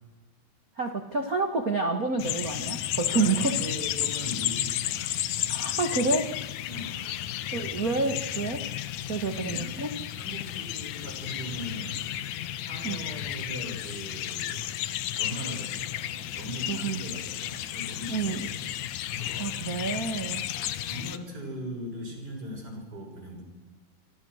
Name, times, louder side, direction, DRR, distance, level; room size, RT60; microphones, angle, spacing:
voice 1, 0.8-3.6 5.5-6.3 7.5-8.6 9.1-9.9 12.8-13.0 16.7-17.0 18.1-18.4 19.4-20.4, right 3 dB, 70° right, 5 dB, 0.8 m, -28 dB
sound 1, 2.2-21.2, left 12 dB, 80° left, 1.6 m, -33 dB
voice 2, 3.1-5.0 5.4-5.5 6.7-7.0 9.3-9.7 10.1-12.1 12.5-14.7 15.1-18.6 19.1-19.6 20.1-23.4, equal, 25° right, 2 dB, 7.1 m, -40 dB
26.5 x 25.5 x 6.4 m, 1.2 s
omnidirectional pair, 4.4 m